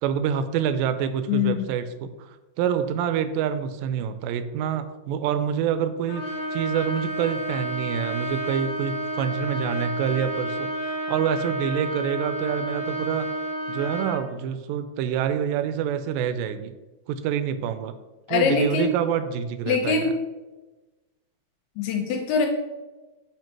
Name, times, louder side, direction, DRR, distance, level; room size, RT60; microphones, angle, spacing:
voice 1, 0.0-2.3 2.6-6.2 6.5-13.3 13.7-16.7 17.1-18.0 18.3-20.1, right 8 dB, 80° right, 10 dB, 2.0 m, -27 dB
voice 2, 1.3-1.7 18.3-18.9 19.7-20.1 21.8-22.5, left 6 dB, 80° left, 3 dB, 2.3 m, -23 dB
Trumpet, 6.1-14.2, right 1 dB, 60° left, 2.1 m, -30 dB
7.4 x 2.8 x 5.9 m, 1.1 s
omnidirectional pair, 4.1 m